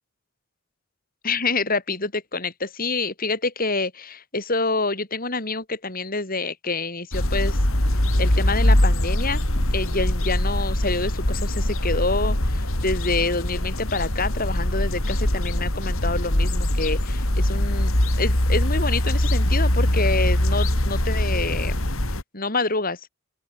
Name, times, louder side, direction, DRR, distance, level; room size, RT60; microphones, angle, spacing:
voice 1, 1.2-7.6 8.2-9.4 9.7-21.8 22.3-23.0, left 3 dB, 45° left, 7.7 m, -27 dB
sound 1, 7.1-22.2, left 1 dB, 85° left, 4.0 m, -22 dB
open air
head